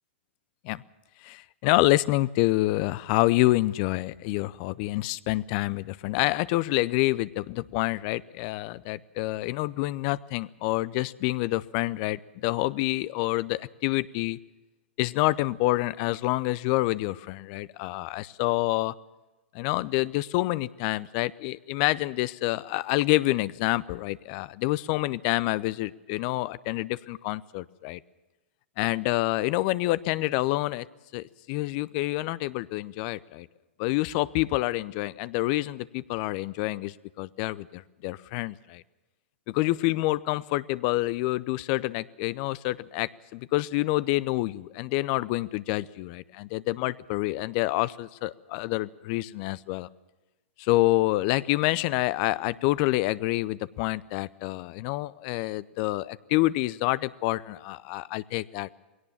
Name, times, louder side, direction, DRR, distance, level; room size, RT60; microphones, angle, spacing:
voice 1, 1.2-14.4 15.0-18.9 19.5-28.0 28.8-30.9 31.1-33.5 33.8-38.8 39.5-49.9 50.6-58.7, left 19 dB, 45° left, 18 dB, 0.6 m, -27 dB
20.5 x 17.5 x 7.2 m, 1.1 s
hypercardioid pair, 110°, 6 cm